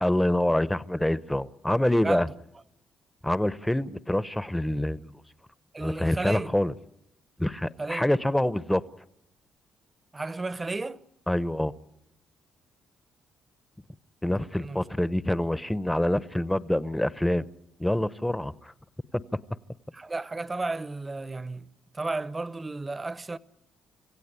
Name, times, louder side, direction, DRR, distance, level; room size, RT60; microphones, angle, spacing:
voice 1, 0.0-2.3 3.2-5.1 5.8-6.7 7.4-8.8 11.3-11.7 14.2-17.4 17.8-18.7, left 1 dB, 5° left, 0.8 m, -26 dB
voice 2, 5.7-6.5 7.8-8.1 10.1-11.0 14.5-14.9 19.9-23.4, right 3 dB, 25° right, 0.8 m, -33 dB
26.0 x 16.0 x 9.7 m
cardioid pair, 90°, 0 cm